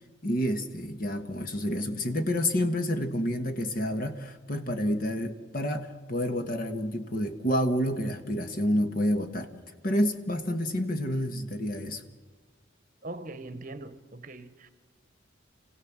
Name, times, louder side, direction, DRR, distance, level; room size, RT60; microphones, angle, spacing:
voice 1, 0.2-9.5 9.8-12.0, equal, 45° left, 1.4 m, -29 dB
voice 2, 13.0-14.7, right 2 dB, 40° right, 1.0 m, -41 dB
27.0 x 16.5 x 7.4 m
head